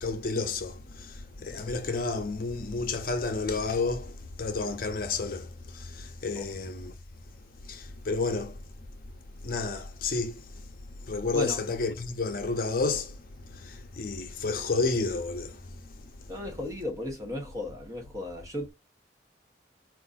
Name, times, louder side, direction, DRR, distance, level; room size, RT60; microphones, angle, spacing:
voice 1, 0.0-4.1 4.4-5.5 5.7-6.9 7.7-8.6 9.4-10.4 11.1-13.2 13.5-15.6, left 3 dB, 50° left, 0.6 m, -31 dB
voice 2, 16.3-18.7, left 1 dB, 20° right, 1.0 m, -35 dB
4.5 x 2.5 x 4.0 m
head